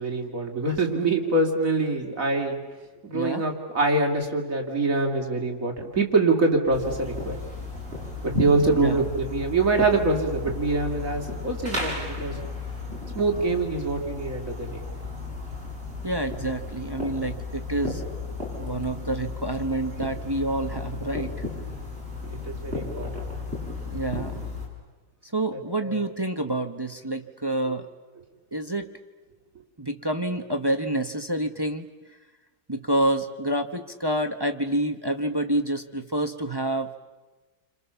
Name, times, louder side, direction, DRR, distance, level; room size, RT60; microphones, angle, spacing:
voice 1, 0.0-2.6 3.0-7.4 8.2-12.4 13.1-14.8 22.2-23.2 25.5-26.0, right 3 dB, 55° right, 2 dB, 3.1 m, -25 dB
voice 2, 3.1-3.4 8.7-9.1 16.0-18.0 18.6-21.4 23.9-24.5 25.2-27.9 28.5-28.9 29.8-31.9 32.7-37.0, right 1 dB, 20° right, 7 dB, 1.0 m, -28 dB
sound 1, 6.7-24.7, left 3 dB, 35° right, 6.6 m, -34 dB
29.5 x 26.0 x 7.0 m, 1.2 s
omnidirectional pair, 1.7 m